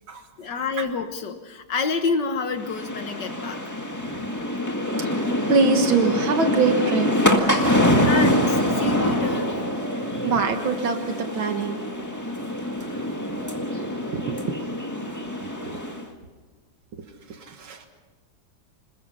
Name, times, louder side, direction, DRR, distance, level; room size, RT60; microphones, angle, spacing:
voice 1, 0.4-3.6 6.8-6.9 8.0-9.5, left 4 dB, 60° left, 7 dB, 2.0 m, -28 dB
sound 1, 2.6-16.1, equal, 10° left, 1.7 m, -25 dB
voice 2, 5.2-7.1 10.1-11.8 14.1-14.6 15.6-15.7 17.5-17.9, right 4 dB, 80° right, 5 dB, 2.3 m, -24 dB
27.0 x 20.5 x 5.7 m, 1.3 s
omnidirectional pair, 2.2 m